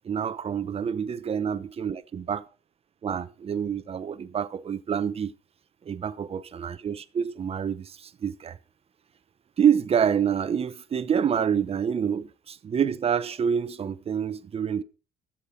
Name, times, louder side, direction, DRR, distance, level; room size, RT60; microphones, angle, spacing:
voice 1, 0.0-2.4 3.0-5.3 5.8-8.6 9.6-14.8, right 8 dB, 35° right, 0.9 m, -27 dB
12.5 x 7.6 x 5.1 m
cardioid pair, 110°, 17 cm